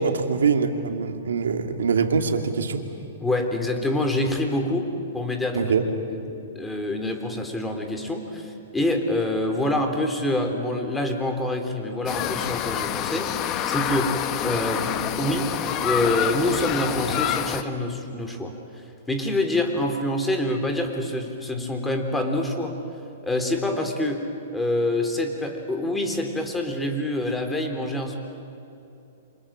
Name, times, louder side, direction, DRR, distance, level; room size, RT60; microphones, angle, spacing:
voice 1, 0.0-2.8 5.5-5.8, right 5 dB, 75° right, 5 dB, 2.5 m, -23 dB
voice 2, 3.2-5.7 6.1-13.3 13.7-14.1 14.4-15.5 15.8-22.8 23.2-24.2 24.5-28.2, left 1 dB, 10° left, 4 dB, 3.7 m, -26 dB
sound 1, 12.1-17.6, left 10 dB, 35° left, 1.4 m, -27 dB
29.0 x 26.0 x 7.6 m, 2.8 s
hypercardioid pair, 120°, 0 cm